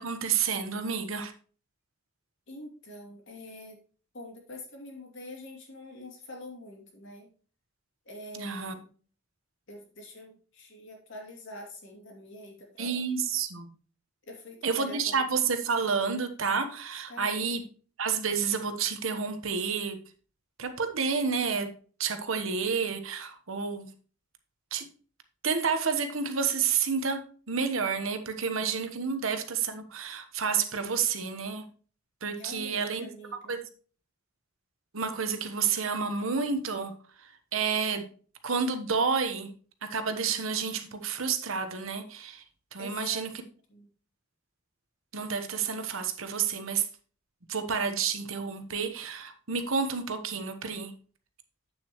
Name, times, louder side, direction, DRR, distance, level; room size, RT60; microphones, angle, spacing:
voice 1, 0.0-1.3 8.3-8.7 12.8-13.7 14.6-17.6 18.0-20.0 20.6-21.7 22.0-23.9 24.7-24.9 25.4-31.6 32.2-33.1 33.5-33.6 34.9-36.9 37.2-38.1 38.4-39.5 39.8-42.4 42.7-43.3 45.1-46.9 47.5-50.9, right 5 dB, 75° right, 8 dB, 1.1 m, -30 dB
voice 2, 2.5-3.8 4.1-7.3 8.0-9.0 9.7-13.1 14.3-15.2 17.1-17.6 32.4-33.6 42.8-43.2 43.7-43.9, left 1 dB, 65° left, 0 dB, 2.7 m, -45 dB
8.5 x 7.4 x 3.0 m, 0.41 s
head